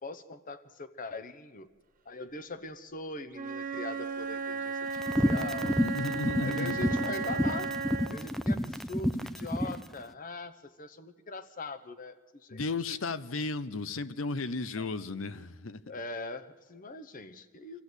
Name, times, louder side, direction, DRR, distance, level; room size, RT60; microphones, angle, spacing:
voice 1, 0.0-1.7 2.0-4.7 5.2-5.8 6.4-7.7 8.1-12.6 14.8-14.9 15.9-17.8, left 3 dB, 40° left, 1.0 m, -41 dB
Wind instrument woodwind instrument, 3.3-8.3, right 5 dB, 40° right, 1.3 m, -35 dB
sound 1, 5.0-9.8, equal, ahead, 0.5 m, -29 dB
voice 2, 5.6-7.2 12.5-15.8, left 3 dB, 70° left, 0.8 m, -34 dB
25.5 x 14.0 x 8.1 m
head